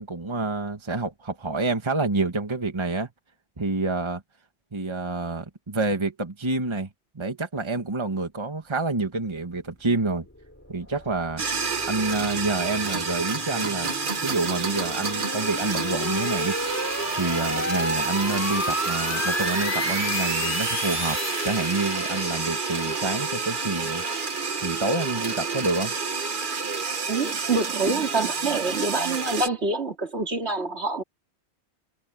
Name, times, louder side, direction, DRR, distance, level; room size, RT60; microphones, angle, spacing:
voice 1, 0.0-3.1 3.6-4.2 4.7-6.9 7.1-10.2 10.7-11.4 11.9-13.9 14.2-16.6 17.1-21.2 21.4-24.0 24.6-25.9, right 3 dB, 25° right, 1.5 m, -28 dB
sound 1, 10.3-26.3, left 1 dB, 15° left, 3.0 m, -33 dB
sound 2, 11.4-29.5, right 5 dB, 45° right, 1.4 m, -29 dB
voice 2, 27.1-31.0, right 3 dB, 65° right, 2.9 m, -26 dB
omnidirectional pair, 1.2 m